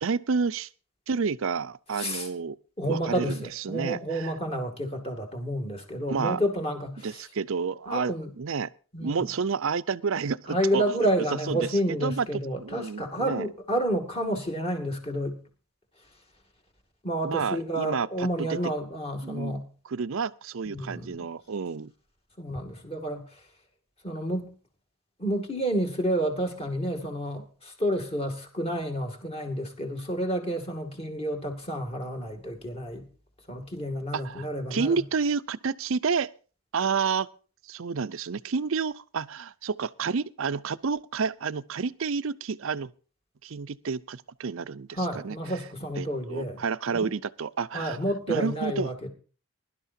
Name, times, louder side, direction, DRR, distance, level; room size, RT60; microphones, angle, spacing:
voice 1, 0.0-0.7 1.1-2.6 2.9-4.3 6.1-6.4 7.0-8.7 9.0-11.1 11.5-12.3 12.6-13.5 17.2-18.6 19.2-19.5 19.8-21.9 34.1-36.3 36.7-37.3 37.6-42.9 43.4-45.6 46.0-48.0 48.3-48.9, right 5 dB, 65° right, 0.5 m, -30 dB
voice 2, 2.0-2.3 2.8-7.1 7.9-8.3 8.9-9.3 10.5-15.4 17.0-19.6 20.7-21.3 22.4-23.3 24.0-24.5 25.2-33.1 33.5-35.0 45.0-46.6 46.9-47.1 47.7-49.1, right 1 dB, 25° left, 2.4 m, -30 dB
21.5 x 12.0 x 2.7 m
head